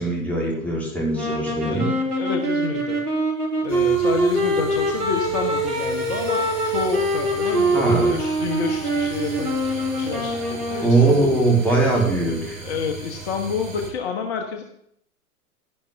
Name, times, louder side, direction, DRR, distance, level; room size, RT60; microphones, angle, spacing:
voice 1, 0.0-1.9 7.7-8.1 10.8-12.6, right 2 dB, 5° left, -4 dB, 3.6 m, -21 dB
sound 1, 1.1-11.1, right 1 dB, 85° right, 3.3 m, -24 dB
voice 2, 1.6-3.0 3.6-11.3 12.6-14.6, left 5 dB, 45° left, 4 dB, 1.3 m, -29 dB
sound 2, 3.7-13.9, right 5 dB, 60° right, 3.6 m, -37 dB
11.5 x 11.0 x 3.5 m, 0.72 s
figure-of-eight pair, 105°, 44 cm